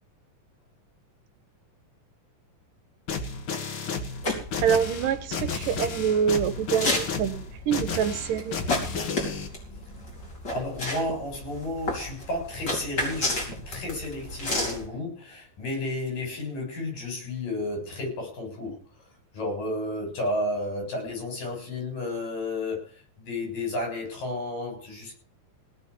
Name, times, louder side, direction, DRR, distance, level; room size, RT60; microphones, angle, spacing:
sound 1, 3.1-9.5, left 4 dB, 45° left, 2.1 m, -32 dB
sound 2, 4.2-14.9, left 1 dB, 30° left, 5.3 m, -33 dB
voice 1, 4.6-8.6, right 8 dB, 75° right, 11 dB, 2.8 m, -26 dB
voice 2, 10.5-18.8 19.3-22.9 23.2-25.2, left 2 dB, 75° left, 2 dB, 8.8 m, -32 dB
18.0 x 6.3 x 8.4 m, 0.41 s
omnidirectional pair, 3.9 m